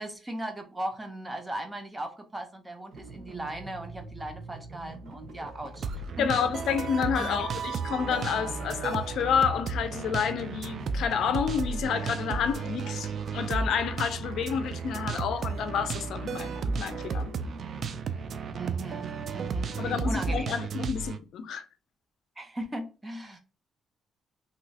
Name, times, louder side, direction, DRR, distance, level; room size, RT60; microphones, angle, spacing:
voice 1, 0.0-6.4 7.2-7.4 18.5-20.5 22.4-23.4, right 1 dB, 15° right, 0.8 m, -38 dB
sound 1, 2.9-20.5, right 3 dB, 75° right, 1.0 m, -45 dB
sound 2, 5.8-21.2, right 5 dB, 55° right, 0.3 m, -34 dB
voice 2, 6.2-17.3 19.8-21.7, left 7 dB, 75° left, 0.4 m, -29 dB
3.0 x 2.8 x 2.7 m
cardioid pair, 90°, 0 cm